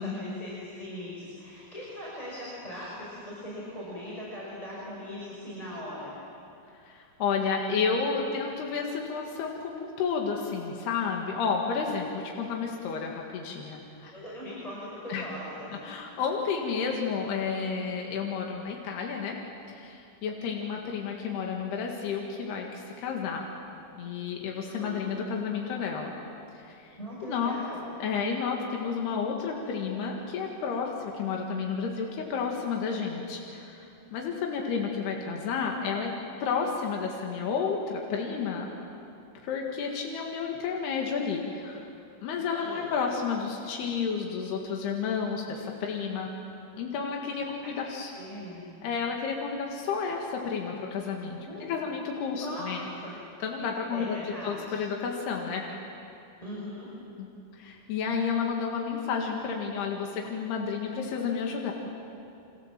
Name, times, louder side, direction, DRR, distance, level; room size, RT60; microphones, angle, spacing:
voice 1, 0.0-6.2 14.1-15.7 24.6-25.1 27.0-27.8 42.5-42.9 47.6-47.8 48.1-48.6 51.4-51.7 52.3-52.8 53.0-53.2 53.9-54.7 56.4-56.9, left 1 dB, 10° left, -7 dB, 5.5 m, -40 dB
voice 2, 6.9-14.1 15.1-15.3 15.8-19.4 19.7-23.5 24.0-26.1 26.6-27.0 27.3-27.6 28.0-36.1 36.4-38.7 39.4-41.9 42.2-46.3 46.8-48.1 48.8-51.4 51.7-52.9 53.4-55.7 57.2-57.3 57.5-61.7, left 5 dB, 85° left, 0 dB, 4.0 m, -31 dB
29.5 x 26.0 x 7.5 m, 2.7 s
omnidirectional pair, 4.5 m